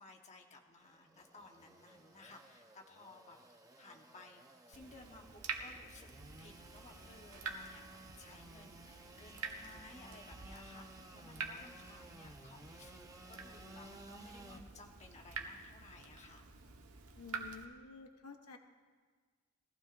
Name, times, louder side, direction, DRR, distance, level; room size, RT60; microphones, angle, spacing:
voice 1, 0.0-3.4 3.8-6.1 6.4-16.5, left 2 dB, 30° left, 1 dB, 1.3 m, -58 dB
Engine / Sawing, 0.8-14.6, right 2 dB, 15° right, 0.9 m, -57 dB
Water tap faucet / Drip, 4.7-17.6, right 5 dB, 85° right, 1.3 m, -48 dB
voice 2, 17.1-18.6, left 5 dB, 90° left, 5 dB, 1.0 m, -51 dB
21.5 x 15.0 x 2.6 m, 1.5 s
head